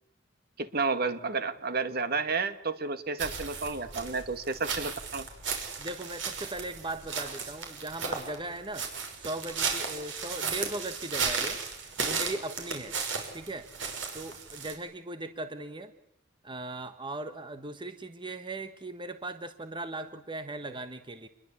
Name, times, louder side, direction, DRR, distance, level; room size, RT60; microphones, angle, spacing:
voice 1, 0.6-5.3, right 4 dB, 55° right, 11 dB, 1.9 m, -31 dB
sound 1, 3.2-14.7, right 5 dB, 85° right, 6.1 m, -35 dB
voice 2, 5.8-8.9 9.1-11.6 12.0-13.0 13.3-13.7 14.1-15.9 16.4-21.3, right 2 dB, 25° right, 9 dB, 1.3 m, -38 dB
27.5 x 21.5 x 8.5 m, 0.77 s
head